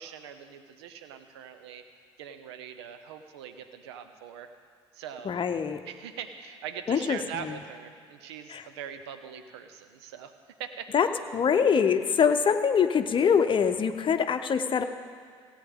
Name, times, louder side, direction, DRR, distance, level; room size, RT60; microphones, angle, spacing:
voice 1, 0.0-1.8 2.2-4.5 4.9-5.3 5.9-10.3 10.6-10.9, right 8 dB, 75° right, 8 dB, 0.7 m, -42 dB
voice 2, 5.2-5.8 6.9-7.6 8.5-8.6 10.9-14.8, left 6 dB, 35° left, 8 dB, 0.8 m, -24 dB
17.0 x 8.9 x 3.7 m, 2.1 s
hypercardioid pair, 55°, 14 cm